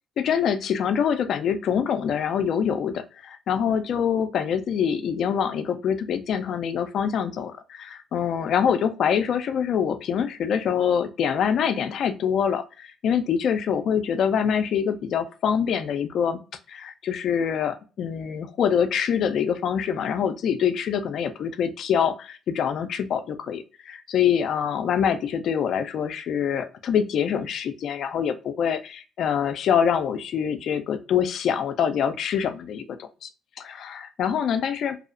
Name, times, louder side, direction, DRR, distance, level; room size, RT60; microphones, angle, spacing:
voice 1, 0.2-16.4 16.7-33.3 33.6-35.0, left 8 dB, 65° left, 8 dB, 0.3 m, -25 dB
2.6 x 2.0 x 2.5 m, 0.34 s
supercardioid pair, 75°, 0 cm